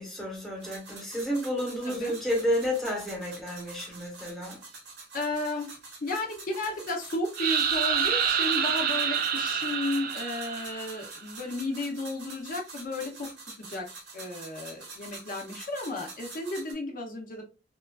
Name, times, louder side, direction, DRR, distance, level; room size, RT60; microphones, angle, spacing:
voice 1, 0.0-4.6, equal, ahead, 0.9 m, -31 dB
sound 1, 0.6-16.7, right 3 dB, 75° right, 1.0 m, -46 dB
voice 2, 5.1-5.7 6.0-13.3 13.7-13.9 14.1-17.4, left 2 dB, 50° left, 0.6 m, -33 dB
Ghost Scream, 7.4-11.2, right 7 dB, 55° right, 0.4 m, -27 dB
3.0 x 2.3 x 2.2 m
head